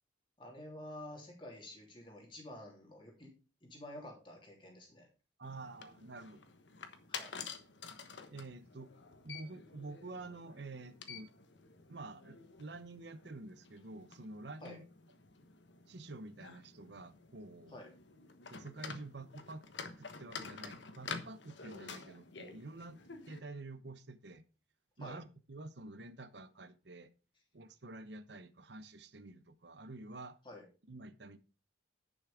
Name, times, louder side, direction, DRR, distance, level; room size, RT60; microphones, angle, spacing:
voice 1, 0.4-3.3 3.6-5.1 7.1-7.3 14.6-14.8 17.7-17.9 25.0-25.2 30.4-30.6, left 1 dB, 25° left, 3.2 m, -50 dB
sound 1, 5.4-23.4, left 5 dB, 75° left, 1.3 m, -50 dB
voice 2, 5.4-6.4 8.3-8.9 9.2-11.3 11.9-14.8 15.9-17.8 18.5-19.7 20.0-23.0 23.3-24.4 25.0-27.1 27.5-30.4 30.9-31.4, right 2 dB, 70° right, 0.9 m, -49 dB
10.5 x 6.3 x 5.0 m
head